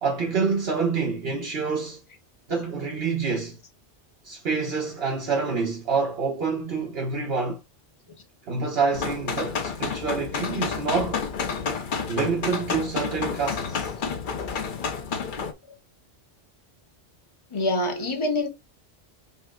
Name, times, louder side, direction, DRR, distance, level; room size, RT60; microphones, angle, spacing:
voice 1, 0.0-2.0 2.5-3.6 4.2-7.6 8.5-11.2 12.1-13.9, right 4 dB, 60° right, 1.2 m, -27 dB
sound 1, 8.9-15.5, left 5 dB, 55° left, 0.8 m, -30 dB
voice 2, 17.5-18.5, left 2 dB, 30° left, 1.0 m, -25 dB
5.6 x 2.1 x 3.7 m
omnidirectional pair, 1.1 m